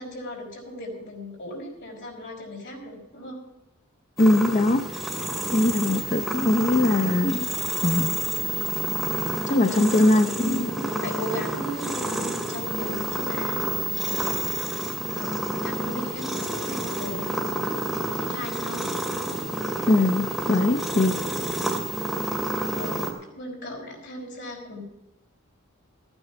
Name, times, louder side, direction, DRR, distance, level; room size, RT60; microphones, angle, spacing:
voice 1, 0.0-3.4 9.5-10.3 10.9-14.8 15.1-17.6 18.1-18.9 22.7-24.8, left 1 dB, 60° left, 0 dB, 5.0 m, -37 dB
voice 2, 4.2-5.0 5.5-7.5 7.8-8.2 9.5-10.9 19.9-21.1, left 2 dB, 35° left, 8 dB, 0.6 m, -21 dB
sound 1, 4.2-23.1, right 1 dB, ahead, 2.3 m, -29 dB
14.5 x 9.8 x 5.9 m, 0.91 s
head